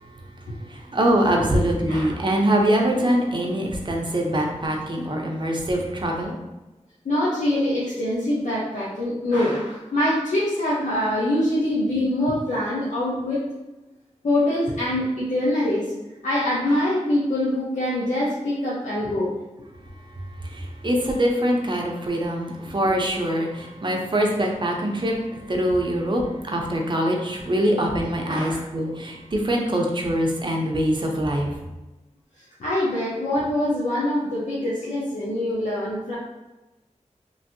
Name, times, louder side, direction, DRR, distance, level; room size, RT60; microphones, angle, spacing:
voice 1, 0.0-6.4 20.1-31.6, right 1 dB, 40° right, 1 dB, 0.6 m, -24 dB
voice 2, 7.0-13.4 14.2-15.9 16.2-19.4 28.3-28.6 32.6-36.1, left 1 dB, 80° left, -8 dB, 0.7 m, -24 dB
3.0 x 2.6 x 2.6 m, 1.0 s
wide cardioid pair, 70°, 12 cm